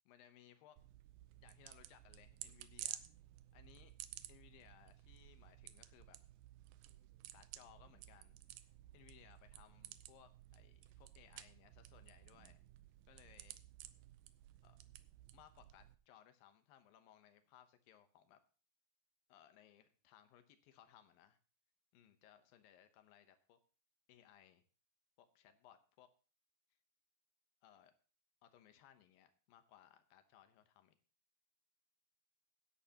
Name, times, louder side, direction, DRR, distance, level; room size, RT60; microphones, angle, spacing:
voice 1, 0.1-0.8 1.4-3.1 3.5-3.9 4.3-6.2 7.3-8.4 8.9-12.6 13.1-13.6 14.6-14.8 15.3-18.4 19.3-21.4 21.9-23.6 24.1-24.6 25.2-26.1 27.6-27.9 28.4-30.9, left 10 dB, 85° left, 9 dB, 2.7 m, -65 dB
sound 1, 0.8-16.0, right 14 dB, 85° right, 2.4 m, -55 dB
16.5 x 10.5 x 2.9 m, 0.37 s
omnidirectional pair, 4.0 m